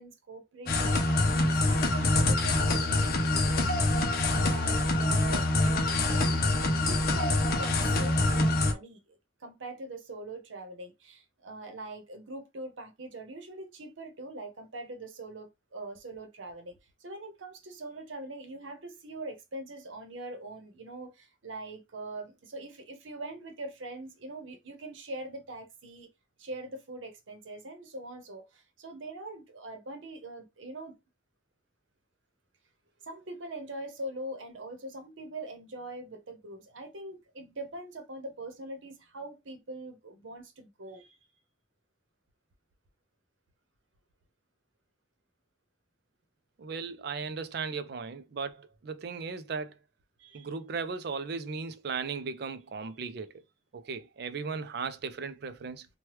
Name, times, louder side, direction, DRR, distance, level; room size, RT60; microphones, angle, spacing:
voice 1, 0.0-3.7 4.4-9.0 9.4-26.1 26.4-31.0 33.0-41.2 50.2-50.5, right 2 dB, 80° right, 0.8 m, -42 dB
sound 1, 0.7-8.7, left 2 dB, 50° left, 0.6 m, -25 dB
voice 2, 46.6-49.8 50.3-53.4 53.7-55.9, right 5 dB, 55° right, 0.4 m, -36 dB
3.0 x 2.2 x 3.1 m
head